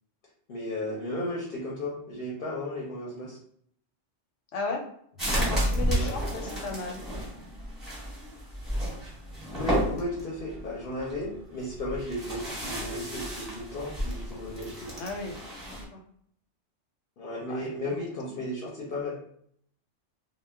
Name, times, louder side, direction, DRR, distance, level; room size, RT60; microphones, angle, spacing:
voice 1, 0.5-3.4 5.9-6.1 9.4-14.9 17.2-19.2, left 1 dB, 55° left, -5 dB, 0.7 m, -34 dB
voice 2, 4.5-4.9 5.3-7.0 14.9-16.0 17.5-17.9 18.2-18.3, left 3 dB, 85° left, 2 dB, 0.9 m, -36 dB
sound 1, 5.2-15.8, equal, ahead, 0.8 m, -32 dB
2.2 x 2.0 x 3.3 m, 0.66 s
omnidirectional pair, 1.2 m